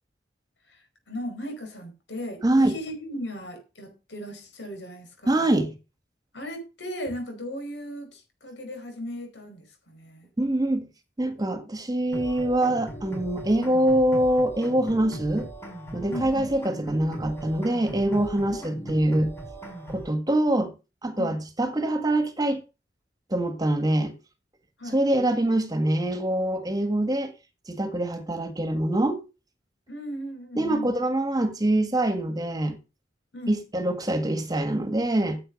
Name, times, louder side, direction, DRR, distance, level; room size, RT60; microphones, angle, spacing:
voice 1, 1.1-5.5 6.3-10.3 16.1-16.6 18.5-18.6 21.2-21.4 24.8-25.0 29.9-31.0 33.3-33.6, left 1 dB, 80° left, 4.8 m, -37 dB
voice 2, 2.4-2.7 5.3-5.7 10.4-10.9 11.2-15.5 15.9-19.3 19.9-20.7 21.0-22.6 23.3-24.2 24.9-27.3 27.7-29.2 30.6-32.8 33.5-35.4, right 1 dB, 20° right, 1.7 m, -24 dB
sound 1, 12.1-20.1, right 1 dB, 15° left, 4.7 m, -39 dB
10.0 x 8.0 x 5.3 m
head